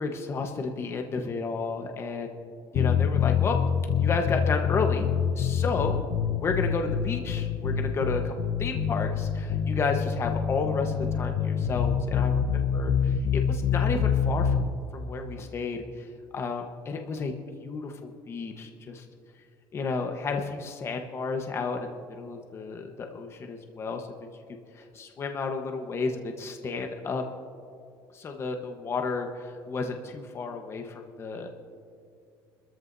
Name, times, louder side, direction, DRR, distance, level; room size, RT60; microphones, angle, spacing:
voice 1, 0.0-2.4 2.7-3.6 4.0-5.1 5.4-6.0 6.4-8.3 8.6-14.5 14.9-16.1 16.3-17.3 17.6-19.0 19.7-21.8 22.1-24.1 24.7-27.2 28.1-31.5, left 4 dB, 35° left, 4 dB, 1.2 m, -32 dB
sound 1, 2.7-14.7, left 7 dB, 65° left, 0.9 m, -26 dB
29.0 x 14.0 x 2.7 m, 2.5 s
cardioid pair, 125°, 8 cm